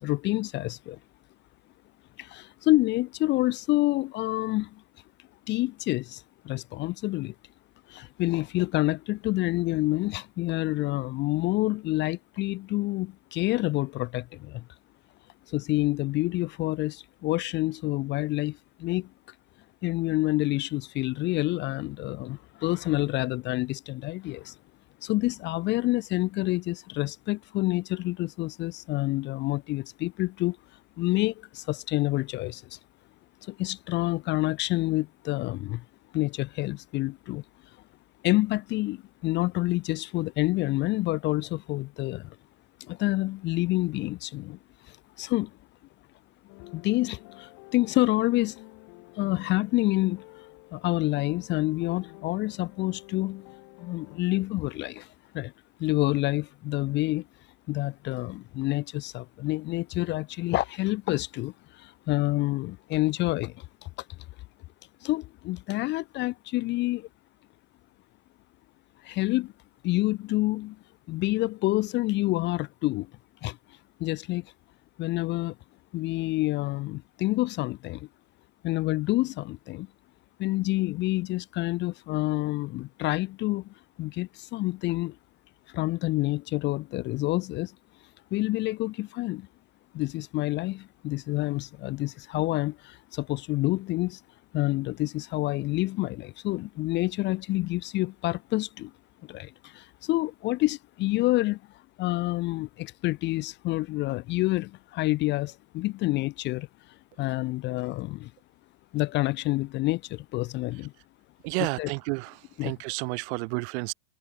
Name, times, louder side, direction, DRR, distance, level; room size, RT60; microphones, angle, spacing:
voice 1, 0.0-1.0 2.2-4.8 5.5-7.3 7.9-14.7 15.5-19.1 19.8-24.6 25.0-30.6 31.0-32.8 33.4-35.8 36.1-37.4 38.2-42.4 42.8-45.5 46.7-48.6 49.1-50.5 50.7-53.5 53.8-55.5 55.8-57.3 57.7-63.9 65.0-67.1 69.0-69.5 69.8-70.8 71.1-73.1 73.4-74.5 75.0-75.6 75.9-78.1 78.6-79.9 80.4-85.2 85.7-87.7 88.3-89.5 89.9-94.2 94.5-98.9 99.3-101.6 102.0-108.3 108.9-110.9 111.6-111.9 112.6-112.7, left 19 dB, 25° left, 0.5 m, -28 dB
sound 1, 46.5-54.2, left 38 dB, 50° left, 3.4 m, -49 dB
voice 2, 111.4-112.3 112.6-113.9, right 30 dB, 50° right, 0.6 m, -30 dB
supercardioid pair, 150°, 45 cm